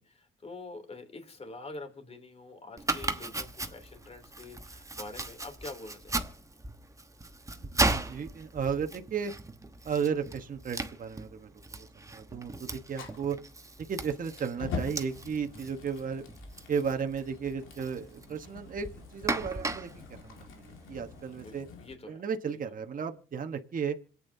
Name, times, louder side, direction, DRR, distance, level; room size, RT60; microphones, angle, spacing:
voice 1, 0.0-6.4 21.3-22.2 22.6-22.7, left 3 dB, 30° left, 6 dB, 3.0 m, -46 dB
Domestic sounds home sounds, 2.8-21.2, right 2 dB, 15° right, 1.1 m, -37 dB
voice 2, 7.6-9.3 9.8-13.4 13.8-16.3 16.7-21.7 22.1-24.0, right 6 dB, 45° right, 5 dB, 1.2 m, -34 dB
Fire, 13.0-21.9, left 4 dB, 85° left, 2.1 m, -44 dB
26.5 x 8.9 x 2.7 m, 0.37 s
cardioid pair, 90°, 20 cm